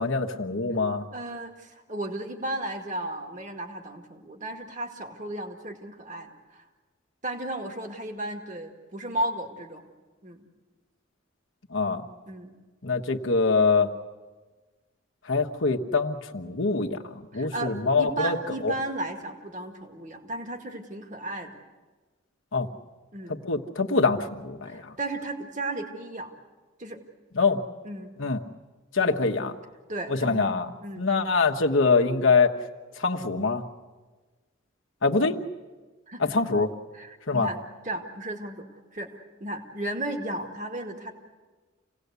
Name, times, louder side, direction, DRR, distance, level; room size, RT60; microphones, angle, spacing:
voice 1, 0.0-1.1 11.7-12.0 12.8-13.9 15.3-18.4 18.6-18.7 22.5-22.7 23.4-24.9 27.3-27.6 28.2-28.4 28.9-29.6 30.1-30.7 31.0-32.5 33.0-33.6 35.0-35.4 36.2-36.7 37.3-37.5, left 4 dB, 75° left, 3 dB, 1.3 m, -24 dB
voice 2, 1.1-6.6 7.2-9.8 10.2-10.5 12.3-12.6 17.3-21.6 23.1-23.4 24.6-26.3 26.8-27.0 27.8-28.1 29.0-29.2 29.9-30.5 30.8-31.0 36.1-36.5 36.9-37.6 37.8-38.6 38.9-41.1, right 1 dB, 40° right, 4 dB, 2.1 m, -34 dB
27.5 x 18.0 x 8.2 m, 1.3 s
head